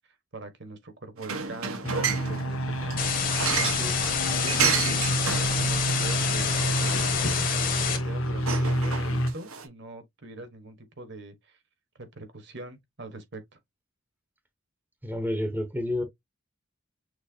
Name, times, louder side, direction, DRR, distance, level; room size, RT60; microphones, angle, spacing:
voice 1, 0.3-3.0 3.4-4.0 4.4-5.0 5.5-7.0 7.2-11.6 11.9-13.6, right 2 dB, 55° right, 1.3 m, -42 dB
sound 1, 1.2-9.7, right 6 dB, 85° right, 1.3 m, -32 dB
sound 2, 1.8-9.3, right 1 dB, 70° left, 1.0 m, -29 dB
sound 3, 3.0-8.0, left 7 dB, 40° left, 1.4 m, -28 dB
voice 2, 15.0-16.0, left 1 dB, 10° right, 0.9 m, -29 dB
6.5 x 2.9 x 2.7 m
head